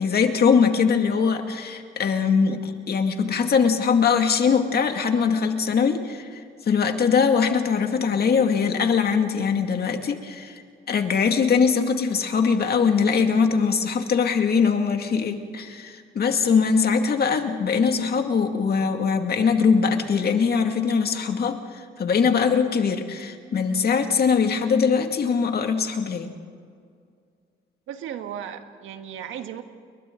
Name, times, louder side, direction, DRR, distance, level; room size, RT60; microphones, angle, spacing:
voice 1, 0.0-10.6 10.9-26.3, left 6 dB, 50° left, 5 dB, 2.3 m, -22 dB
voice 2, 27.9-29.6, right 9 dB, 85° right, 7 dB, 1.6 m, -35 dB
30.0 x 22.5 x 3.9 m, 2.2 s
cardioid pair, 90°, 20 cm